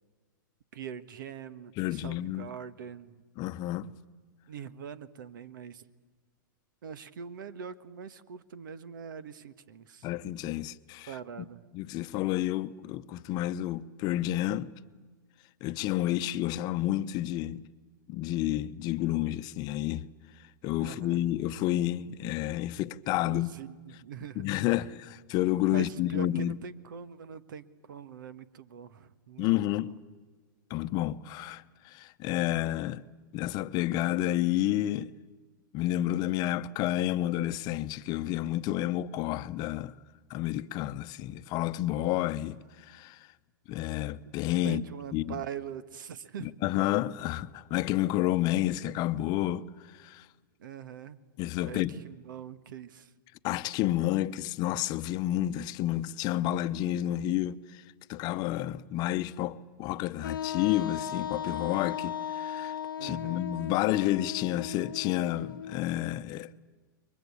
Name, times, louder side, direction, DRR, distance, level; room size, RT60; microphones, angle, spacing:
voice 1, 0.7-3.2 4.5-5.8 6.8-10.1 11.1-11.6 20.8-21.2 23.2-24.8 25.7-30.0 44.2-44.4 44.6-46.5 50.6-51.2 51.6-53.1 63.0-63.4, right 7 dB, 70° right, 1.4 m, -43 dB
voice 2, 1.8-2.5 3.4-3.9 10.0-11.1 11.7-14.7 15.6-17.7 18.1-20.1 20.6-23.5 24.4-26.6 29.4-30.0 30.7-33.0 33.3-35.1 35.7-39.9 40.3-43.2 43.7-44.8 45.1-45.3 46.4-50.3 51.4-52.0 53.4-57.8 58.1-62.8 63.0-66.5, left 14 dB, 35° left, 0.9 m, -30 dB
Wind instrument woodwind instrument, 60.2-66.0, left 9 dB, 90° left, 1.0 m, -37 dB
29.5 x 23.0 x 8.5 m
hypercardioid pair, 125°, 11 cm